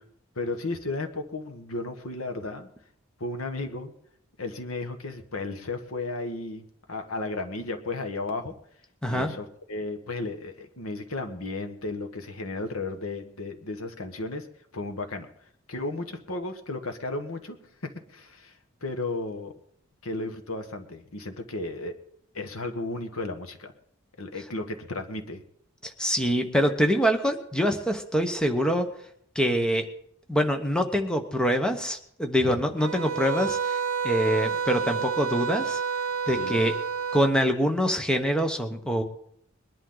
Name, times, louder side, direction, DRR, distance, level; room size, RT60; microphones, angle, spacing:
voice 1, 0.3-2.7 3.2-3.9 4.4-8.5 9.1-14.5 14.7-19.5 20.0-21.9 22.3-23.7 24.2-25.4 32.4-32.6 36.4-36.6, left 2 dB, 85° left, 6 dB, 1.4 m, -34 dB
voice 2, 25.8-28.9 29.3-29.9 30.3-33.8 34.0-35.8 36.3-36.7 37.1-39.0, equal, 5° left, 5 dB, 1.0 m, -25 dB
sound 1, 32.8-37.4, right 6 dB, 80° right, 0.8 m, -29 dB
22.0 x 11.0 x 3.9 m, 0.68 s
head